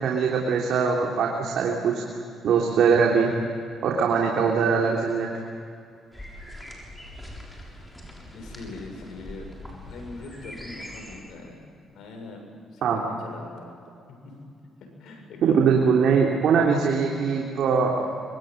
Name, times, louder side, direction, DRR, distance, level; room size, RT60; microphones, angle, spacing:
voice 1, 0.0-2.0 2.4-3.3 3.8-5.3 12.8-13.0 15.4-18.1, right 6 dB, 75° right, -1 dB, 3.3 m, -22 dB
sound 1, 6.1-11.2, left 1 dB, 10° left, 7.0 m, -42 dB
voice 2, 7.6-8.0 8.3-12.4 12.7-13.8 14.1-14.3 15.0-15.7 16.6-17.0, left 3 dB, 75° left, 2 dB, 7.2 m, -42 dB
25.0 x 23.5 x 9.3 m, 2.3 s
cardioid pair, 90°, 0 cm